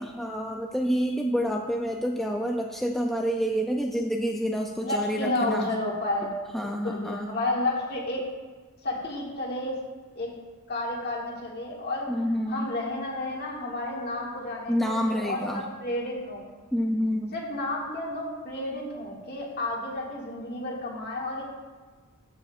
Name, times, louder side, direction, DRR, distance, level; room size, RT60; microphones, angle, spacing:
voice 1, 0.0-5.7 6.5-7.3 12.1-12.7 14.7-15.6 16.7-17.4, equal, ahead, 1 dB, 0.3 m, -28 dB
voice 2, 4.8-6.3 6.6-8.2 8.8-9.8 10.1-10.3 10.7-12.1 12.5-16.4 17.3-21.4, left 2 dB, 50° left, -3 dB, 1.9 m, -31 dB
14.0 x 7.0 x 2.4 m, 1.4 s
head